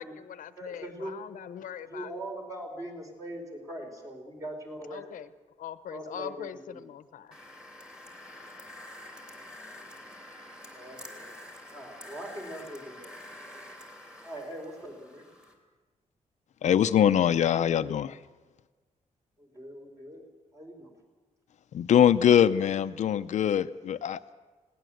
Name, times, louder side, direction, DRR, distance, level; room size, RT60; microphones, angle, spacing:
voice 1, 0.0-2.1 4.9-5.3 5.6-7.3, left 9 dB, 90° left, 13 dB, 0.9 m, -41 dB
voice 2, 0.6-1.1 1.5-5.2 5.9-6.8 10.7-11.3 11.7-13.6 14.2-15.2 19.4-20.2 20.5-20.9, right 1 dB, 25° right, 2 dB, 4.6 m, -42 dB
sound 1, 7.3-15.5, left 1 dB, 5° right, 3.1 m, -47 dB
voice 3, 16.6-18.2 21.7-24.2, left 9 dB, 65° left, 10 dB, 0.6 m, -23 dB
21.0 x 17.5 x 7.8 m, 1.3 s
wide cardioid pair, 175°, 13 cm